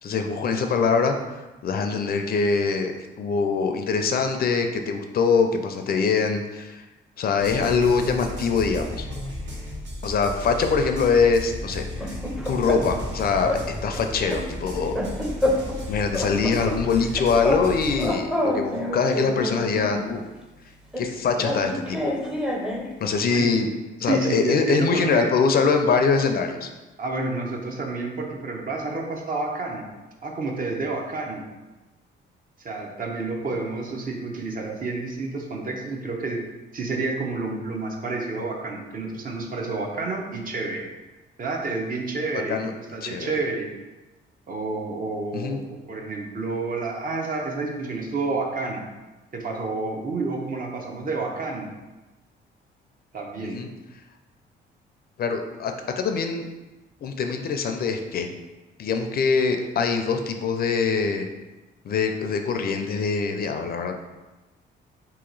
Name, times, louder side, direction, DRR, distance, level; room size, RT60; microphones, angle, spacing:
voice 1, 0.0-1.2 1.6-6.9 7.2-9.1 10.0-12.2 12.5-13.5 13.8-15.0 15.9-20.2 21.0-22.2 23.0-23.7 24.0-26.7 42.5-42.7 43.0-43.3 45.3-45.6 53.4-53.7 55.2-56.5 57.0-58.3 58.8-61.3 61.8-64.2, left 5 dB, 50° left, 5 dB, 0.4 m, -23 dB
sound 1, 7.4-18.1, left 1 dB, 70° right, 1.3 m, -35 dB
sound 2, 11.8-13.1 13.4-13.7 13.9-15.8 16.1-17.7 17.9-20.1 20.9-22.9, left 1 dB, 5° right, 0.5 m, -28 dB
voice 2, 23.3-23.7 24.0-25.3 27.0-29.9 30.2-31.4 32.6-36.4 36.7-40.9 41.4-43.7 44.5-48.8 49.3-51.7 53.1-53.6, right 3 dB, 45° right, 1 dB, 0.7 m, -29 dB
2.9 x 2.9 x 3.9 m, 1.1 s
cardioid pair, 90°, 20 cm